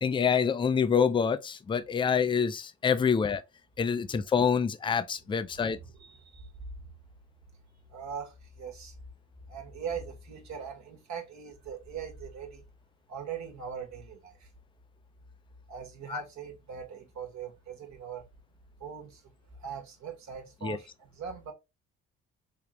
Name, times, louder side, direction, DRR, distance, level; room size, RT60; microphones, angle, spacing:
voice 1, 0.0-3.4 3.8-5.8 16.1-16.2 20.6-20.8, left 6 dB, 15° left, 0.4 m, -26 dB
voice 2, 5.5-6.5 7.9-8.9 9.5-12.6 13.1-14.5 15.7-18.3 18.8-19.3 19.6-21.5, right 6 dB, 55° right, 1.1 m, -41 dB
3.4 x 2.4 x 3.0 m
supercardioid pair, 65°, 33 cm